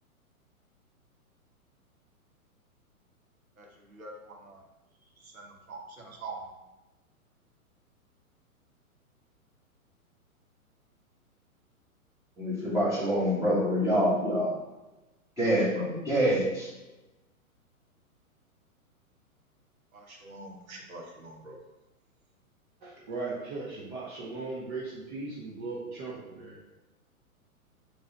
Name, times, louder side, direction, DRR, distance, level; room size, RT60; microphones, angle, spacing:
voice 1, 3.6-4.6 5.2-6.4 19.9-21.6, right 3 dB, 70° right, 0 dB, 1.1 m, -45 dB
voice 2, 12.4-14.5 15.4-16.7, equal, 5° right, -9 dB, 1.4 m, -26 dB
voice 3, 22.8-26.6, right 3 dB, 35° right, -5 dB, 0.8 m, -38 dB
3.7 x 3.2 x 4.0 m, 1.0 s
figure-of-eight pair, 115°, 44 cm